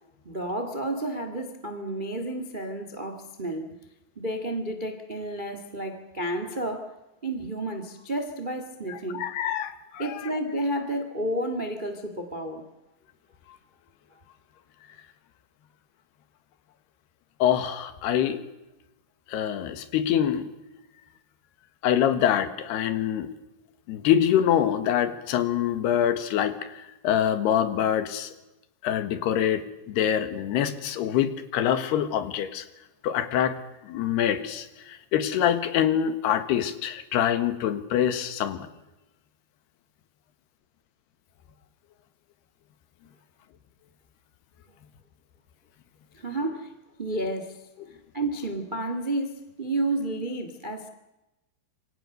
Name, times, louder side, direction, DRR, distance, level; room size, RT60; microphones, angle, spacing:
voice 1, 0.2-3.8 4.1-7.0 7.2-9.3 10.0-12.7 46.1-46.7 47.0-47.7 48.1-50.9, right 1 dB, 65° right, 0.4 m, -31 dB
voice 2, 8.9-10.3 17.4-18.4 19.3-20.5 21.8-23.3 23.9-28.3 28.8-32.7 33.0-33.6 33.8-38.7, left 10 dB, 75° left, 3.5 m, -25 dB
27.5 x 24.0 x 6.7 m
omnidirectional pair, 4.8 m